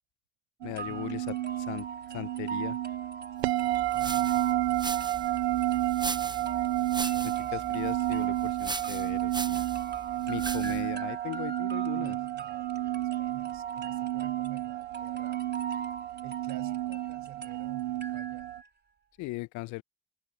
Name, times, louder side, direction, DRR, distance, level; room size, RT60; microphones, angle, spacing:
voice 1, 0.6-2.8 7.2-9.6 10.3-12.2 19.2-19.8, left 21 dB, 70° left, 0.8 m, -38 dB
sound 1, 0.6-18.6, right 15 dB, 90° right, 0.6 m, -31 dB
sound 2, 0.7-18.7, right 4 dB, 35° right, 4.2 m, -43 dB
voice 2, 3.4-6.7 7.1-7.8 10.4-10.8 11.9-15.4 16.2-18.5, right 14 dB, 70° right, 7.5 m, -51 dB
sound 3, 3.6-10.9, right 3 dB, 15° right, 0.9 m, -40 dB
open air
hypercardioid pair, 40°, 31 cm